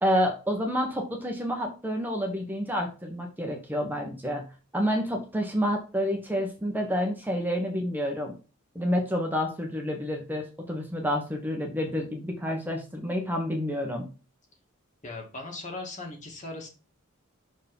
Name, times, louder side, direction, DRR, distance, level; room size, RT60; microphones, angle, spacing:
voice 1, 0.0-4.4 4.7-8.3 8.7-14.1, equal, 10° right, 2 dB, 1.4 m, -29 dB
voice 2, 15.0-16.7, left 2 dB, 40° left, 1 dB, 2.4 m, -38 dB
6.2 x 4.8 x 5.5 m, 0.33 s
head